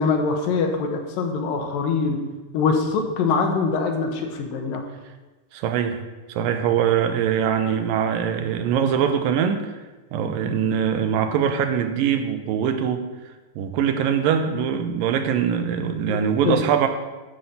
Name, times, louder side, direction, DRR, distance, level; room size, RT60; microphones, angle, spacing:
voice 1, 0.0-2.2 2.5-4.8 10.4-10.7 16.1-16.6, left 4 dB, 75° left, 3 dB, 2.8 m, -23 dB
voice 2, 5.5-6.0 6.3-9.7 10.1-13.1 13.6-16.9, right 8 dB, 80° right, 7 dB, 2.4 m, -22 dB
10.0 x 5.8 x 6.9 m, 1.2 s
omnidirectional pair, 4.1 m